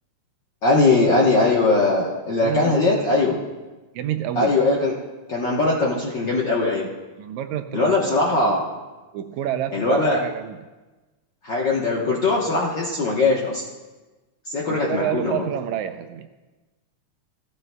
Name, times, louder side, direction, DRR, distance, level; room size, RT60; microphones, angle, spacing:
voice 1, 0.6-3.4 4.4-4.9 5.3-6.9 7.7-8.6 9.7-10.2 11.4-13.6 14.5-15.4, left 3 dB, 60° left, -4 dB, 1.2 m, -20 dB
voice 2, 2.4-3.1 4.0-4.6 7.2-8.6 9.1-10.6 14.7-16.3, right 11 dB, 80° right, 8 dB, 1.8 m, -29 dB
16.5 x 13.5 x 2.2 m, 1.2 s
omnidirectional pair, 3.5 m